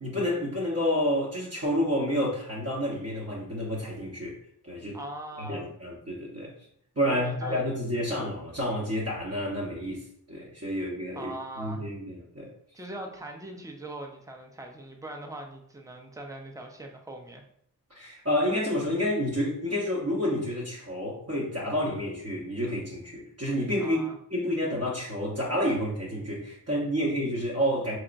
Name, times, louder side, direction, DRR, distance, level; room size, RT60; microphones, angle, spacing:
voice 1, 0.0-4.4 4.6-5.0 5.4-6.5 7.0-12.5 17.9-24.0 24.3-28.0, equal, 40° right, -5 dB, 1.1 m, -29 dB
voice 2, 4.9-5.7 7.0-7.6 7.9-8.3 11.1-11.9 12.7-17.4 23.8-24.2, right 1 dB, 10° right, 2 dB, 0.6 m, -41 dB
4.5 x 2.8 x 2.5 m, 0.68 s
wide cardioid pair, 65°, 38 cm